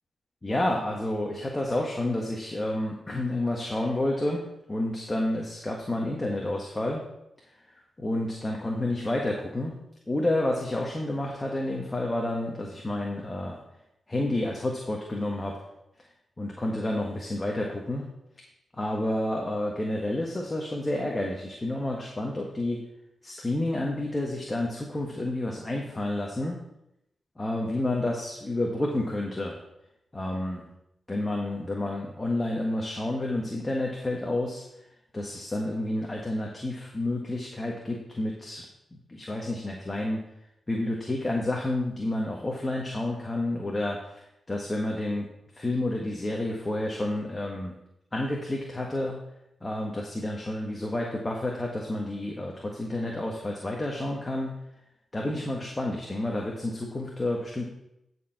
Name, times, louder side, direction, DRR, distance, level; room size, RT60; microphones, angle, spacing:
voice 1, 0.4-4.4 4.7-7.0 8.0-9.7 10.1-13.6 14.1-15.7 16.4-18.1 18.7-22.8 23.2-26.6 27.4-29.6 30.1-30.7 31.1-34.8 35.1-38.6 38.9-40.2 40.7-45.3 45.5-47.7 48.1-49.2 49.6-54.5 55.1-57.7, left 1 dB, 25° left, -1 dB, 1.6 m, -30 dB
11.0 x 4.7 x 5.9 m, 0.84 s
cardioid pair, 65°, 0 cm